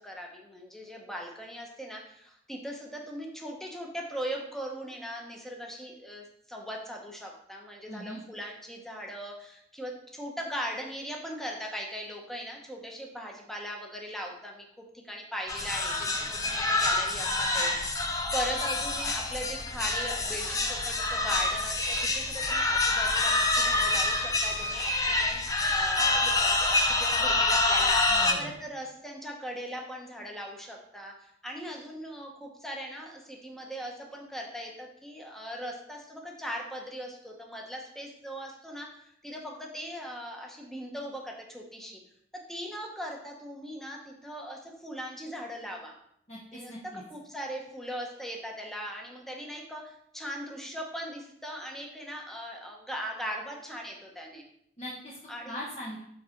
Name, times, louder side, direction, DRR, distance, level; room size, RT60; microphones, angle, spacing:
voice 1, 0.0-42.0 42.5-46.0 46.5-54.4 55.3-55.6, equal, ahead, 0 dB, 1.0 m, -39 dB
voice 2, 7.9-8.2 28.1-28.5 46.3-47.0 54.8-55.2 55.5-56.0, equal, 35° left, -6 dB, 1.2 m, -40 dB
sound 1, 15.5-28.3, left 2 dB, 20° left, 0.6 m, -27 dB
7.2 x 4.1 x 4.5 m, 0.71 s
head